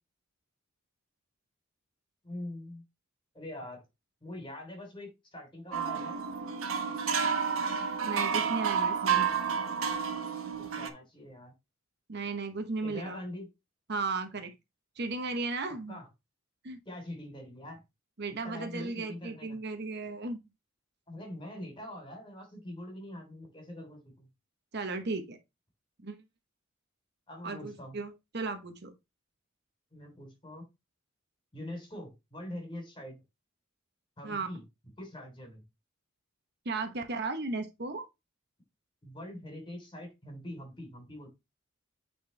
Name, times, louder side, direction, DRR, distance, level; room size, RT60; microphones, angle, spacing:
voice 1, 2.2-2.8 3.3-3.8 4.2-6.2 10.6-11.5 12.8-13.5 15.9-16.1 16.9-17.8 18.4-19.6 21.1-24.3 27.3-28.0 29.9-30.6 31.5-33.2 34.2-34.6 35.0-35.6 39.0-41.3, left 1 dB, 25° left, 3.4 m, -43 dB
sound 1, 5.7-10.9, right 6 dB, 85° right, 1.3 m, -30 dB
voice 2, 8.0-9.3 12.1-13.2 13.9-14.5 15.0-16.0 16.6-16.8 18.2-20.4 24.7-25.4 26.0-26.2 27.4-29.0 34.2-34.5 36.6-38.1, right 3 dB, 55° right, 0.9 m, -35 dB
9.2 x 4.4 x 3.3 m
head